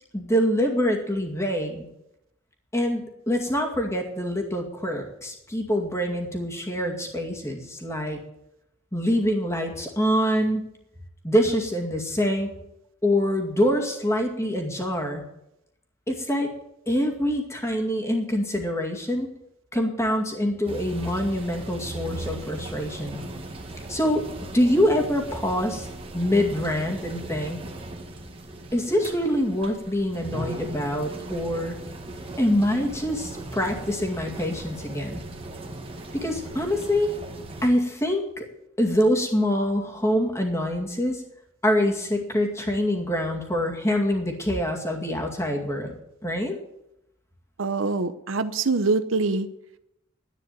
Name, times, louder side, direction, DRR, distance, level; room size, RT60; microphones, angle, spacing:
voice 1, 0.1-1.9 2.7-8.2 8.9-10.7 11.2-12.5 13.0-15.2 16.1-16.5 16.9-19.3 19.7-23.2 23.9-24.2 24.5-25.9 26.1-27.6 28.7-31.8 32.4-35.2 36.2-37.1 37.6-38.4 38.8-41.2 41.6-45.9 46.2-46.6, equal, 15° left, 2 dB, 2.1 m, -25 dB
sound 1, 20.7-37.7, right 1 dB, 30° right, 1.6 m, -38 dB
voice 2, 47.6-49.5, right 3 dB, 80° right, 12 dB, 0.8 m, -24 dB
10.5 x 9.4 x 9.2 m, 0.83 s
head